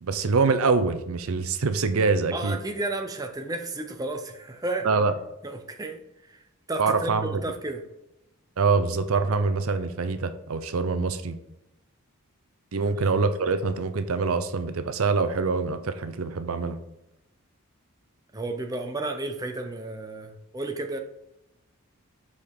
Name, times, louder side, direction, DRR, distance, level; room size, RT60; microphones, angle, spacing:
voice 1, 0.0-2.6 4.8-5.1 6.8-7.3 8.6-11.4 12.7-16.8, right 4 dB, 70° right, 10 dB, 0.6 m, -24 dB
voice 2, 2.3-4.9 5.4-7.8 12.8-13.0 18.3-21.0, right 2 dB, 15° right, 4 dB, 0.6 m, -33 dB
6.9 x 4.9 x 3.6 m, 0.89 s
head